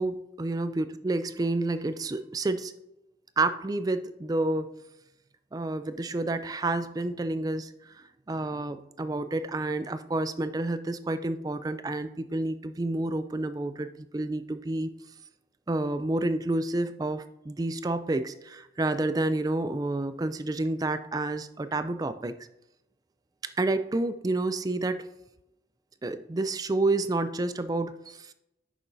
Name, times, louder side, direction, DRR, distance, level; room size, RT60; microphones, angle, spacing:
voice 1, 0.0-2.7 3.4-4.7 5.5-7.9 8.3-14.9 15.7-22.3 23.6-25.1 26.0-28.3, right 2 dB, 20° right, 12 dB, 0.3 m, -29 dB
10.0 x 7.0 x 2.7 m, 0.88 s
head